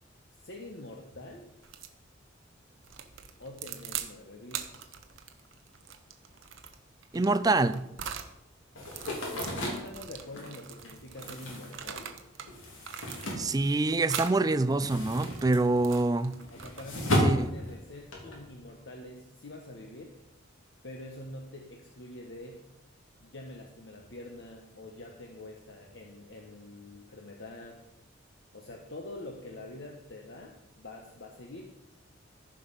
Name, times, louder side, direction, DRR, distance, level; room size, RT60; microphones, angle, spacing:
voice 1, 0.4-1.5 3.4-4.9 9.3-12.1 16.5-20.1 20.8-22.7 23.2-27.8 28.5-31.9, left 1 dB, 60° left, 1.1 m, -45 dB
sound 1, 1.6-2.0 2.8-4.1 4.5-8.3 8.8-12.5 12.8-13.6 14.0-14.4 14.9-17.1, right 8 dB, 75° right, 0.9 m, -42 dB
voice 2, 7.1-7.8 13.4-16.4 17.2-17.5, right 2 dB, 20° right, 0.4 m, -25 dB
sound 2, 8.7-14.2 14.5-18.4, equal, 85° left, 3.2 m, -33 dB
14.5 x 5.3 x 5.5 m
head